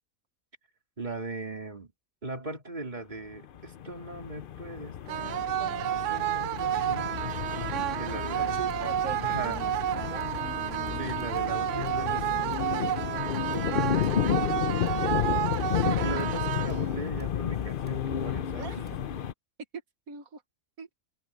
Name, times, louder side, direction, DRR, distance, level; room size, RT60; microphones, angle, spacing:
voice 1, 1.0-1.9 2.2-7.2 7.9-8.6 9.2-9.6 11.0-12.3 14.0-15.4 15.8-18.8, right 2 dB, 30° right, 3.7 m, -39 dB
sound 1, 3.4-19.3, left 9 dB, 55° left, 0.6 m, -32 dB
sound 2, 5.1-17.1, right 12 dB, 70° right, 0.8 m, -31 dB
sound 3, 8.5-19.2, equal, 5° left, 7.9 m, -50 dB
voice 2, 8.5-11.3 12.1-13.0 13.4-13.6 18.5-19.0 20.1-20.4 20.8-20.9, right 5 dB, 85° right, 1.8 m, -43 dB
omnidirectional pair, 1.5 m